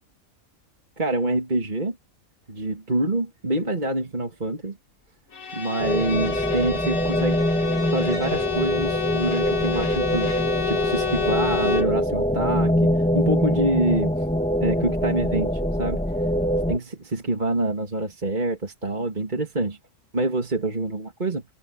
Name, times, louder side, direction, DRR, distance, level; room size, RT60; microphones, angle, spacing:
voice 1, 1.0-2.0 2.5-4.8 5.5-7.4 7.9-10.3 10.7-12.7 13.1-14.1 14.6-16.0 16.7-19.8 20.1-21.5, right 2 dB, 35° right, 2.6 m, -26 dB
Bowed string instrument, 5.3-12.0, left 8 dB, 90° left, 2.7 m, -30 dB
sound 1, 5.8-16.8, equal, 5° left, 1.8 m, -24 dB
omnidirectional pair, 1.4 m